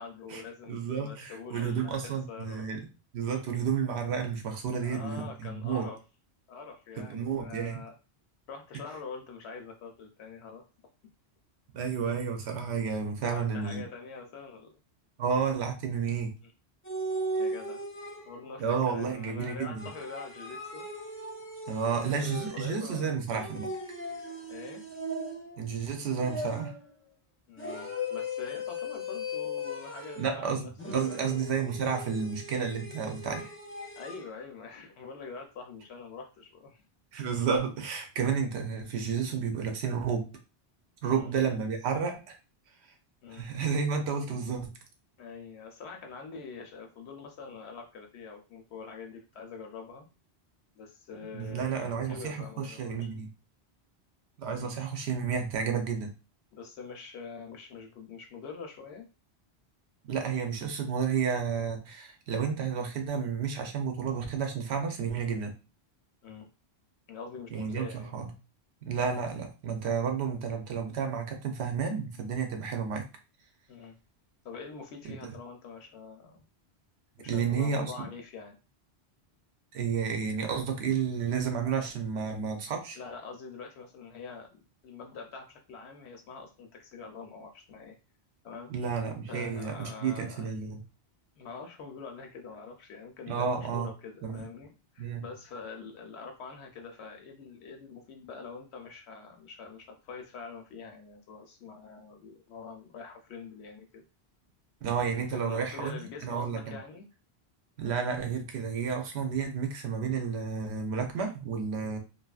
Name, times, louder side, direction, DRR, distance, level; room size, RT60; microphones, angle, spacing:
voice 1, 0.0-2.7 4.8-6.0 6.5-8.0 8.5-10.6 13.2-14.7 16.4-16.5 17.4-17.8 18.2-20.9 21.8-23.1 24.5-24.8 27.5-31.5 34.0-36.8 41.0-41.3 43.2-43.5 45.2-50.1 50.7-53.1 54.5-54.8 56.5-59.1 66.2-66.5 67.1-68.1 73.7-74.0 74.4-76.4 77.2-78.6 83.0-88.0 88.4-88.7 89.3-90.5 91.4-104.0 105.3-107.1, left 5 dB, 80° left, 3 dB, 0.8 m, -45 dB
voice 2, 0.7-2.8 3.1-5.9 7.0-7.8 11.7-13.8 15.2-16.3 18.6-19.9 21.7-23.7 25.6-26.7 30.2-33.5 37.1-40.3 41.0-42.4 43.3-44.7 51.3-53.3 54.4-56.1 60.0-65.5 67.5-68.3 68.8-73.1 75.2-75.3 77.3-77.9 79.7-83.0 88.7-90.8 93.3-93.9 94.2-94.5 95.0-95.2 104.8-106.8 107.8-112.0, right 6 dB, 80° right, 4 dB, 0.9 m, -31 dB
sound 1, 16.8-18.6 19.8-22.8 23.3-25.7 26.2-26.9 27.6-30.4 30.8-34.3, left 1 dB, 15° left, 0.4 m, -38 dB
2.6 x 2.3 x 2.3 m, 0.31 s
omnidirectional pair, 1.1 m